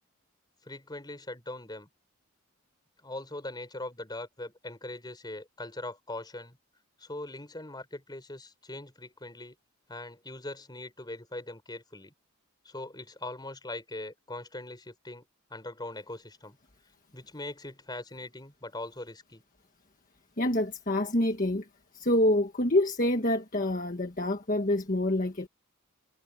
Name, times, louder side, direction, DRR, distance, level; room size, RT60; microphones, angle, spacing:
voice 1, 0.6-1.9 3.0-6.6 7.0-9.6 9.9-12.1 12.6-16.6 17.1-19.4, left 2 dB, 20° left, 4.4 m, -41 dB
voice 2, 20.4-21.6 21.9-25.5, left 1 dB, 40° left, 1.6 m, -26 dB
head